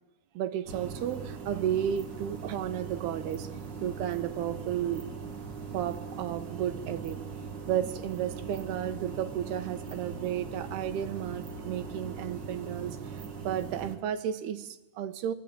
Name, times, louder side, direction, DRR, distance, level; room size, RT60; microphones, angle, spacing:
voice 1, 0.4-3.5 3.8-5.0 5.7-7.2 7.7-13.2 13.5-15.3, right 10 dB, 80° right, 9 dB, 3.5 m, -33 dB
sound 1, 0.7-14.0, right 5 dB, 35° right, 2.0 m, -40 dB
26.5 x 22.0 x 9.1 m, 0.99 s
omnidirectional pair, 4.6 m